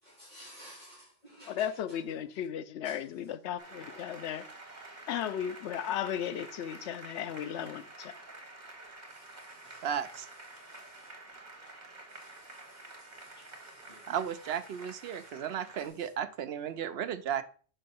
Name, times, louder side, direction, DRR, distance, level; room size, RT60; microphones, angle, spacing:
voice 1, 0.0-2.0 2.8-3.0 9.1-9.9 10.5-11.1 12.1-14.1 15.1-15.3, equal, 40° left, 3.9 m, -55 dB
voice 2, 1.5-4.5 5.1-8.1, left 9 dB, 80° left, 0.9 m, -35 dB
Applause, 3.6-15.9, right 2 dB, 40° right, 1.6 m, -49 dB
voice 3, 9.8-10.3 14.1-17.4, right 8 dB, 70° right, 0.8 m, -34 dB
6.3 x 5.4 x 4.2 m
omnidirectional pair, 1.1 m